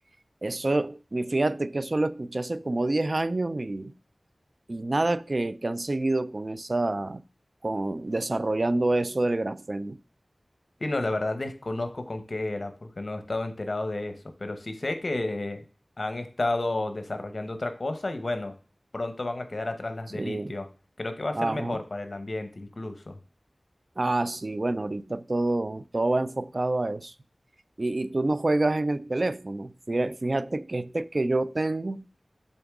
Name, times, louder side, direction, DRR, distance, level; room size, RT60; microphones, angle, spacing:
voice 1, 0.4-3.9 4.7-7.2 7.6-10.0 20.1-20.6 21.3-21.8 24.0-27.1 27.8-32.0, right 2 dB, 50° right, 0.3 m, -27 dB
voice 2, 10.8-15.6 16.0-18.5 18.9-20.7 21.0-23.2, left 2 dB, 60° left, 0.9 m, -31 dB
7.0 x 4.0 x 3.5 m
wide cardioid pair, 55°, 0 cm